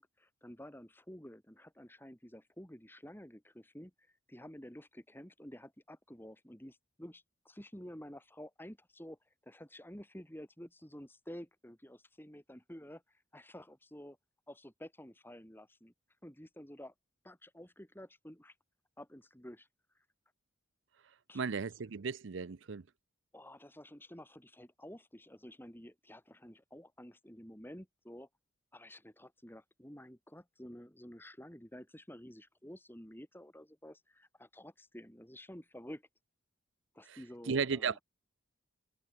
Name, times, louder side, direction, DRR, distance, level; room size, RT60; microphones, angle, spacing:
voice 1, 0.0-3.9 4.3-14.2 14.5-15.9 16.2-16.9 17.2-18.5 19.0-19.7 21.3-21.4 23.3-28.3 28.7-36.0 36.9-38.0, equal, 10° left, 3.7 m, -51 dB
voice 2, 21.3-22.8 37.1-37.2 37.5-38.0, right 5 dB, 65° right, 0.6 m, -35 dB
head